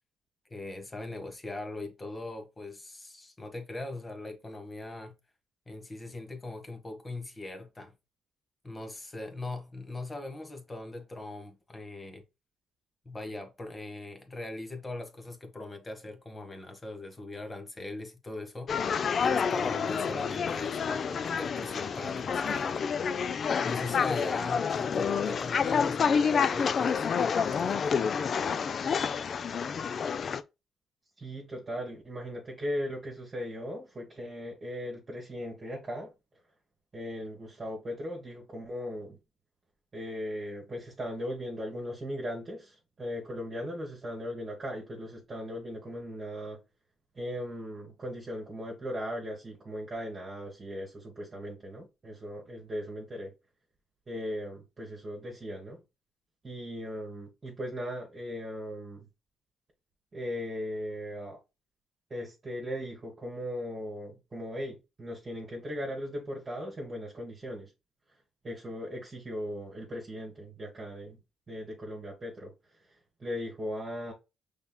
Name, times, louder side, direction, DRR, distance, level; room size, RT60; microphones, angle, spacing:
voice 1, 0.5-5.1 5.7-7.9 8.6-12.2 13.0-22.9 23.6-28.1, left 2 dB, 20° left, 1.2 m, -40 dB
sound 1, 18.7-30.4, left 6 dB, 50° left, 0.4 m, -28 dB
voice 2, 31.2-36.1 36.9-39.2 39.9-46.6 47.1-53.3 54.1-55.8 56.4-59.1 60.1-61.4 62.1-67.7 68.4-71.2 71.5-72.5 73.2-74.1, equal, 30° right, 1.5 m, -38 dB
5.4 x 3.6 x 2.2 m
cardioid pair, 90°, 0 cm